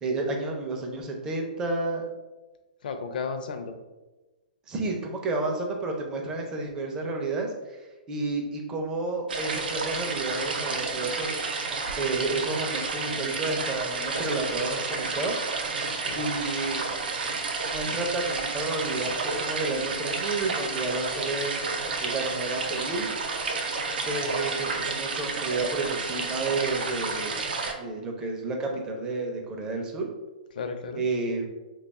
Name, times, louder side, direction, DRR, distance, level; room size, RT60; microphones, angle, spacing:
voice 1, 0.0-2.1 4.7-7.5 8.1-11.4 12.0-15.4 16.1-16.8 17.7-21.5 22.0-23.1 24.0-27.4 27.8-30.1 31.0-31.5, right 3 dB, 15° right, 1 dB, 0.4 m, -31 dB
voice 2, 2.8-3.8 16.0-16.2 24.2-25.0 30.5-31.1, left 5 dB, 65° left, 7 dB, 0.5 m, -35 dB
sound 1, 9.3-27.7, right 4 dB, 90° right, 0.5 m, -31 dB
2.9 x 2.3 x 4.0 m, 1.1 s
hypercardioid pair, 160°, 5 cm